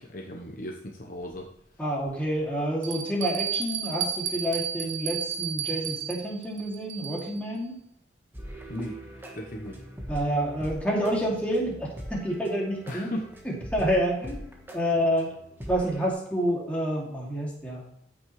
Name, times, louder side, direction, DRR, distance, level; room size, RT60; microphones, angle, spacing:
voice 1, 0.0-1.5 8.7-9.8 12.9-13.3, equal, 50° left, 1 dB, 1.0 m, -36 dB
Bell, 1.2-1.3 2.0-2.1 2.8-7.4, right 8 dB, 85° right, 1.2 m, -32 dB
voice 2, 1.8-7.8 10.1-13.1 13.7-14.4 14.7-15.3 15.7-17.8, equal, 10° left, -4 dB, 2.6 m, -28 dB
sound 1, 8.3-16.1, right 1 dB, 10° right, 1.4 m, -41 dB
14.5 x 6.2 x 3.2 m, 0.74 s
head